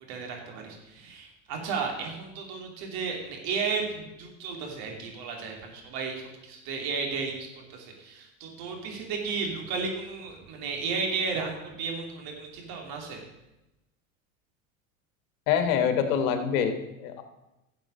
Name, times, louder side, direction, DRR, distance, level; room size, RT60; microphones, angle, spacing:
voice 1, 0.1-7.5 7.7-13.2, right 4 dB, 55° right, 1 dB, 3.0 m, -33 dB
voice 2, 15.5-17.2, left 7 dB, 70° left, 7 dB, 1.6 m, -25 dB
12.0 x 7.5 x 5.3 m, 0.95 s
hypercardioid pair, 90°, 43 cm